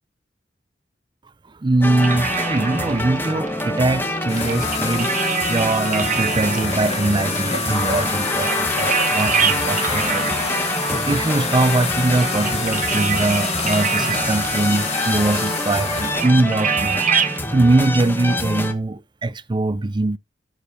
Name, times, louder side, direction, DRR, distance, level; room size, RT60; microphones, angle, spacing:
voice 1, 1.6-10.4 10.9-17.0 17.5-20.2, right 2 dB, 25° right, 0.5 m, -22 dB
sound 1, 1.8-18.7, left 1 dB, 10° left, 1.1 m, -26 dB
sound 2, 2.0-17.4, right 7 dB, 45° right, 1.1 m, -27 dB
sound 3, 4.3-16.3, left 4 dB, 40° left, 2.7 m, -27 dB
8.4 x 6.3 x 5.4 m
head